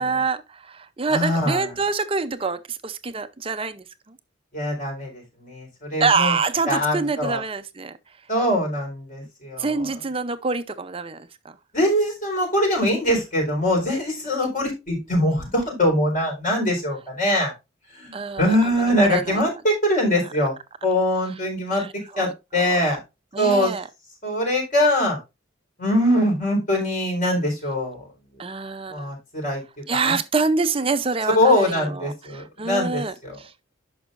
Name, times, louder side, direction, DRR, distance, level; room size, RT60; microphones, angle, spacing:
voice 1, 0.0-3.8 6.0-8.0 9.6-11.3 18.1-18.5 19.0-19.4 21.7-22.3 22.5-22.6 23.3-23.9 28.4-29.1 29.9-33.7, right 4 dB, 25° right, 0.6 m, -26 dB
voice 2, 1.1-1.7 4.5-6.3 6.7-7.4 8.3-10.0 11.7-17.5 17.9-20.5 20.8-21.8 22.2-23.0 23.4-23.7 24.2-25.2 25.8-28.0 28.9-29.6 29.9-30.1 31.3-33.4, left 1 dB, 40° left, 4.2 m, -22 dB
11.0 x 6.1 x 2.5 m
head